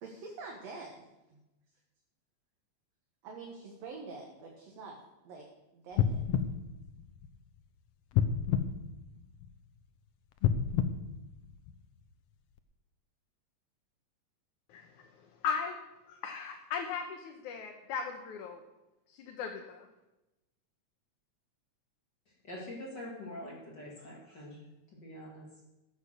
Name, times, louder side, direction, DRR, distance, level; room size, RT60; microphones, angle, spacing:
voice 1, 0.0-1.4 3.2-5.0 5.2-5.5 5.7-6.2, right 4 dB, 65° right, 0 dB, 2.6 m, -46 dB
sound 1, 5.9-7.6 8.1-9.7 10.3-12.0 12.6-12.7, left 8 dB, 70° left, 1.7 m, -31 dB
voice 2, 14.7-15.1 15.4-15.8 16.1-18.6 19.1-19.9, left 6 dB, 90° left, 3 dB, 2.6 m, -37 dB
voice 3, 22.4-24.6 24.9-25.5, left 1 dB, 40° left, -3 dB, 2.8 m, -44 dB
15.0 x 8.3 x 6.6 m, 0.99 s
omnidirectional pair, 3.3 m